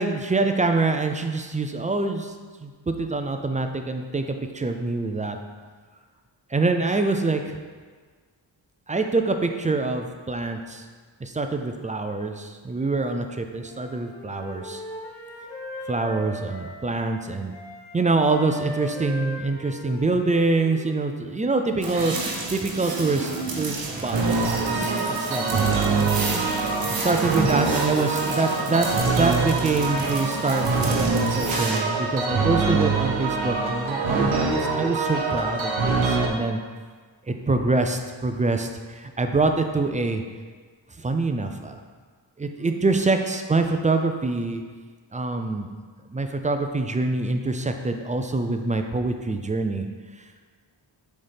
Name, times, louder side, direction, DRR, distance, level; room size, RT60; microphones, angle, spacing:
voice 1, 0.0-2.3 2.6-5.4 6.5-7.6 8.9-10.8 11.2-14.8 15.9-17.5 17.9-25.7 26.9-36.6 37.3-40.2 41.0-41.8 42.4-44.6 45.1-45.7 46.1-49.9, right 3 dB, 20° right, 5 dB, 0.3 m, -25 dB
Wind instrument woodwind instrument, 13.6-17.2 17.5-21.3, left 1 dB, 70° left, 1.4 m, -39 dB
sound 1, 21.8-31.8, right 3 dB, 50° right, 1.0 m, -32 dB
sound 2, 24.1-36.3, right 4 dB, 85° right, 0.8 m, -24 dB
7.0 x 4.2 x 3.4 m, 1.5 s
wide cardioid pair, 110°, 45 cm